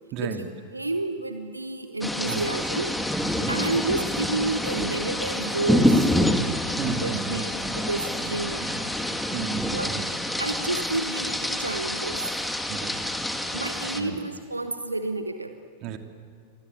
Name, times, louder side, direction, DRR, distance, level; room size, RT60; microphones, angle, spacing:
voice 1, 0.1-0.5 2.3-2.5 3.4-3.7 6.8-7.6 8.2-8.8 9.3-10.1 12.7-13.0 14.0-14.2 15.8-16.0, right 7 dB, 40° right, 5 dB, 2.7 m, -34 dB
voice 2, 0.7-3.0 3.5-6.1 7.0-8.9 9.7-9.9 10.4-12.2 13.5-15.6, right 2 dB, 85° right, 7 dB, 1.3 m, -30 dB
sound 1, 2.0-14.0, left 1 dB, 5° left, 2.2 m, -27 dB
28.5 x 24.5 x 8.4 m, 2.3 s
figure-of-eight pair, 90°, 0 cm